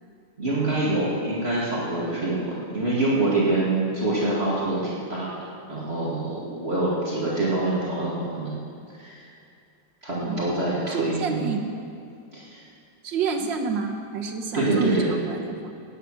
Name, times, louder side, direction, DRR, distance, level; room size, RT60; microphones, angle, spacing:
voice 1, 0.4-5.4 5.7-8.6 8.9-9.3 10.0-11.5 12.3-12.6 14.5-15.2, right 2 dB, 35° right, -7 dB, 2.5 m, -25 dB
voice 2, 10.2-10.6 10.9-11.6 13.0-15.7, right 5 dB, 80° right, 2 dB, 1.9 m, -29 dB
15.0 x 9.8 x 6.3 m, 2.5 s
omnidirectional pair, 2.0 m